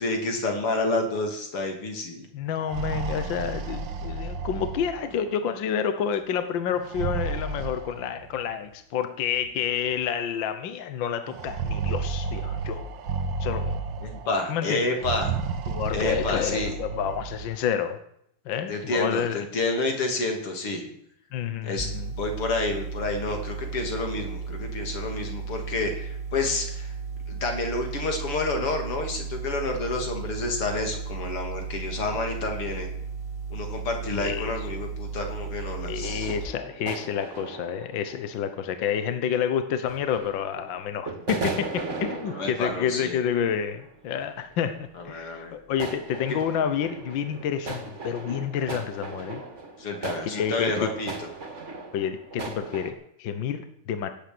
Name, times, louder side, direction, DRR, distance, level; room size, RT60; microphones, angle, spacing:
voice 1, 0.0-2.2 14.0-15.4 15.9-16.8 18.7-20.8 21.6-21.9 22.2-26.9 27.3-32.9 33.5-36.3 42.3-43.2 45.0-45.5 49.8-51.3, left 2 dB, 85° left, 3 dB, 3.7 m, -29 dB
voice 2, 2.3-12.8 13.4-13.7 14.5-14.8 15.7-18.0 18.5-19.4 21.3-22.1 34.1-34.5 35.8-49.4 50.2-50.9 51.9-54.1, left 8 dB, 65° left, 9 dB, 1.6 m, -29 dB
sound 1, 2.5-5.4 6.7-8.4 9.4-9.5 9.9-10.0 11.3-14.4 14.9-17.5, right 5 dB, 65° right, 1.8 m, -32 dB
sound 2, 21.8-36.5, right 5 dB, 15° right, 2.7 m, -35 dB
sound 3, 36.0-39.0 39.9-40.8 41.1-43.9 44.2-44.8 45.8-52.9, right 3 dB, 35° right, 2.3 m, -37 dB
18.0 x 8.6 x 7.8 m, 0.73 s
omnidirectional pair, 2.4 m